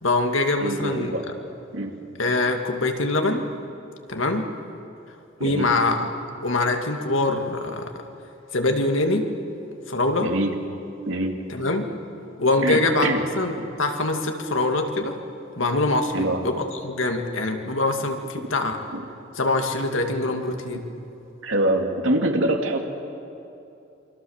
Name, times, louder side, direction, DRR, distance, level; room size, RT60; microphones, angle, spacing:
voice 1, 0.0-1.1 2.2-3.5 4.1-4.4 5.4-6.0 6.4-7.9 8.5-9.3 9.9-10.3 11.5-11.9 12.4-15.2 15.6-18.8 19.4-20.8, left 2 dB, 80° left, 4 dB, 2.3 m, -23 dB
voice 2, 0.6-1.3 1.7-1.9 5.4-5.7 10.2-10.6 11.1-11.4 12.6-13.2 16.1-16.4 18.9-19.0 21.4-22.9, right 1 dB, 75° right, 3 dB, 2.7 m, -24 dB
28.0 x 25.0 x 7.3 m, 2.8 s
head